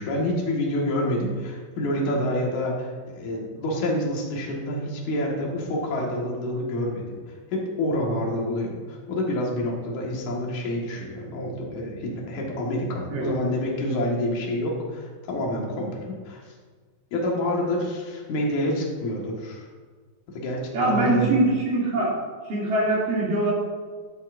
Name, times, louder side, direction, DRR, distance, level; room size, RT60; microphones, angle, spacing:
voice 1, 0.0-16.4 17.1-19.7 20.3-21.3, left 1 dB, 60° left, -2 dB, 2.9 m, -28 dB
voice 2, 20.7-22.1 22.4-23.5, right 2 dB, 75° right, -6 dB, 4.4 m, -23 dB
11.5 x 10.0 x 2.6 m, 1.5 s
omnidirectional pair, 3.9 m